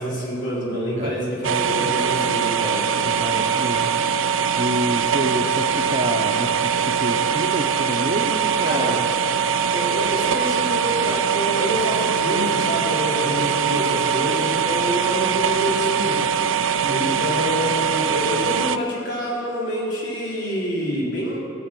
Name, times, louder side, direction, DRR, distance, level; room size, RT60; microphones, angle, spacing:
voice 1, 0.0-2.9 8.6-9.0 9.7-16.2 16.9-21.4, equal, 70° left, -5 dB, 3.9 m, -27 dB
sound 1, 1.4-18.8, right 7 dB, 90° right, 0.5 m, -22 dB
voice 2, 3.0-3.9 4.6-9.0 16.8-17.3, right 1 dB, 35° right, 5 dB, 0.8 m, -28 dB
16.0 x 7.8 x 7.6 m, 2.7 s
head